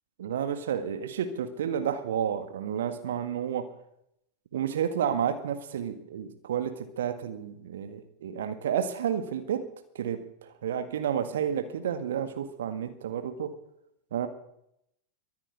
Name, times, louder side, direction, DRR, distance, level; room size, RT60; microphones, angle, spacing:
voice 1, 0.2-3.7 4.5-9.7 10.0-13.6 14.1-14.3, right 8 dB, 60° right, 9 dB, 1.8 m, -31 dB
24.0 x 8.4 x 4.9 m, 0.77 s
figure-of-eight pair, 90°, 0 cm